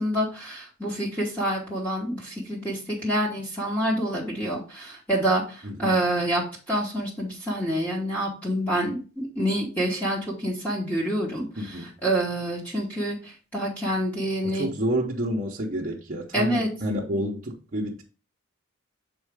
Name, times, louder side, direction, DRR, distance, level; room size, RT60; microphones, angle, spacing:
voice 1, 0.0-14.7 16.3-16.7, right 1 dB, 10° left, 1.2 m, -27 dB
voice 2, 5.6-6.0 11.6-11.9 14.4-18.0, right 1 dB, 40° right, 0.8 m, -29 dB
6.4 x 4.3 x 3.4 m
head